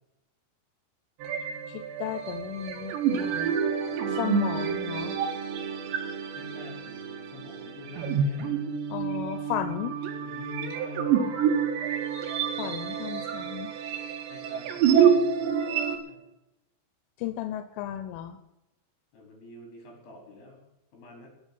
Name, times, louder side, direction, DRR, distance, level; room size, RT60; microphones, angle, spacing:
sound 1, 1.2-16.0, right 7 dB, 70° right, 3.8 m, -28 dB
voice 1, 1.7-3.5 4.1-5.2 8.9-10.0 12.6-13.7 17.2-18.4, left 11 dB, 90° left, 10 dB, 3.4 m, -34 dB
voice 2, 3.8-4.2 6.3-8.6 10.2-11.4 14.2-16.2 19.1-20.6 20.9-21.3, left 3 dB, 55° left, 1 dB, 6.4 m, -47 dB
14.5 x 7.1 x 9.9 m, 0.92 s
omnidirectional pair, 5.5 m